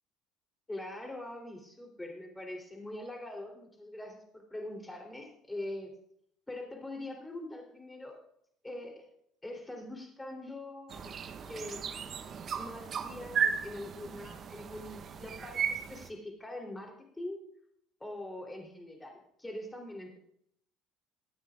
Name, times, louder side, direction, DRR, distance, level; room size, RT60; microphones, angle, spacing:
voice 1, 0.7-5.9 6.5-8.2 8.6-9.0 9.4-11.2 11.4-11.9 12.5-17.4 18.0-20.2, left 1 dB, 10° left, 1 dB, 3.4 m, -43 dB
sound 1, 10.9-16.1, right 7 dB, 45° right, 0.9 m, -35 dB
22.0 x 9.3 x 2.5 m, 0.71 s
hypercardioid pair, 75°, 0 cm